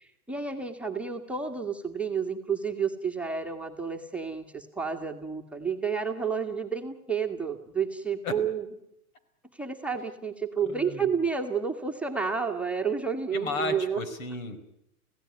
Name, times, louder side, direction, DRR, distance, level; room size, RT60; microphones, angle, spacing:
voice 1, 0.0-8.6 9.5-14.0, right 6 dB, 5° right, 1 dB, 1.7 m, -30 dB
voice 2, 10.7-11.1 13.3-14.6, left 3 dB, 70° left, 12 dB, 4.9 m, -34 dB
26.0 x 17.0 x 9.6 m, 0.80 s
hypercardioid pair, 130°, 43 cm